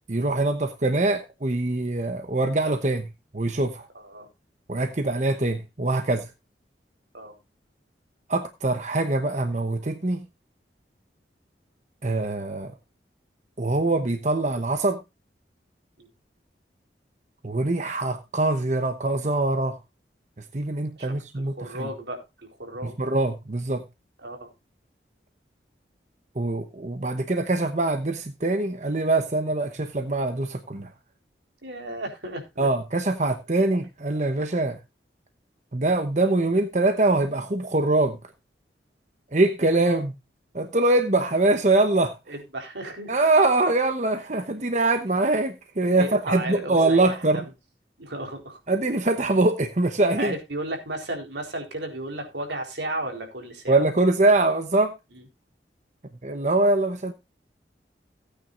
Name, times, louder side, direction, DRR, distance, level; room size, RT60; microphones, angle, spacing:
voice 1, 0.1-3.1 3.3-3.9 4.7-6.3 8.3-10.3 12.0-12.7 13.6-15.0 17.4-19.8 20.4-21.9 22.8-23.8 26.3-30.9 32.6-34.8 35.7-38.2 39.3-40.1 40.5-42.1 43.1-47.4 48.7-50.3 53.7-54.9 56.2-57.1, right 2 dB, 40° right, 1.0 m, -23 dB
voice 2, 21.0-22.9 24.2-24.5 31.6-32.7 39.9-40.0 42.3-43.1 46.0-47.4 48.0-48.6 50.2-53.8 55.1-55.2, right 1 dB, 85° right, 4.1 m, -34 dB
17.5 x 9.2 x 2.5 m
head